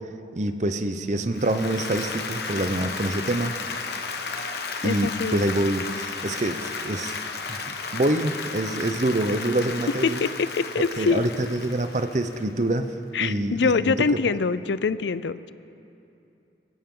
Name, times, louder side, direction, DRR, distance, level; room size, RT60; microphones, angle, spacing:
voice 1, 0.3-3.6 4.8-7.1 7.5-7.6 7.9-10.2 11.0-12.9 13.2-14.0, right 1 dB, 40° right, 8 dB, 0.7 m, -26 dB
Applause, 1.3-12.7, left 4 dB, 65° left, 1.1 m, -34 dB
voice 2, 4.8-5.6 10.0-11.2 13.1-15.5, left 5 dB, 85° left, 16 dB, 0.5 m, -24 dB
23.0 x 16.0 x 3.8 m, 2.8 s
head